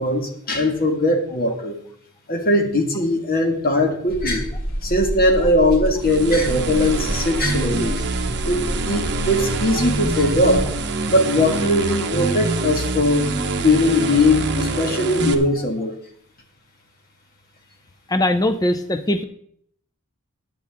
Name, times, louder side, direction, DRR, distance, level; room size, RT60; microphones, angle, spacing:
voice 1, 0.0-1.8 2.3-4.5 4.8-7.9 8.4-10.7 11.1-13.3 13.6-15.9, left 1 dB, 40° left, 4 dB, 1.8 m, -20 dB
sound 1, 4.1-10.8, equal, 75° left, 3.0 m, -29 dB
sound 2, 6.0-15.3, right 3 dB, 50° right, 1.0 m, -25 dB
voice 2, 18.1-19.2, left 1 dB, 15° left, 8 dB, 0.6 m, -20 dB
14.5 x 9.7 x 3.6 m, 0.67 s
head